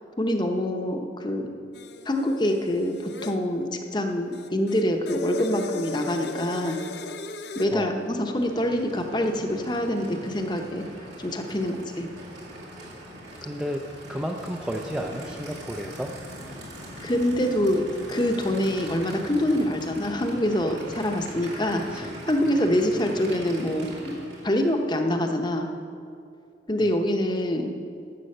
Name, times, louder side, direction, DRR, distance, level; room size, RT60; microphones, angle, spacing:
voice 1, 0.2-1.5 2.0-6.8 7.5-12.1 17.0-24.2 24.4-25.7 26.7-27.7, left 1 dB, 25° left, 4 dB, 0.8 m, -25 dB
sound 1, 1.7-3.4 4.3-7.7, left 3 dB, 65° left, 0.6 m, -38 dB
voice 2, 7.7-8.0 13.4-16.1 21.9-22.2, equal, 5° right, 2 dB, 0.4 m, -32 dB
Aircraft / Idling, 7.9-24.8, equal, 75° right, 2.6 m, -41 dB
11.0 x 7.6 x 6.5 m, 2.5 s
head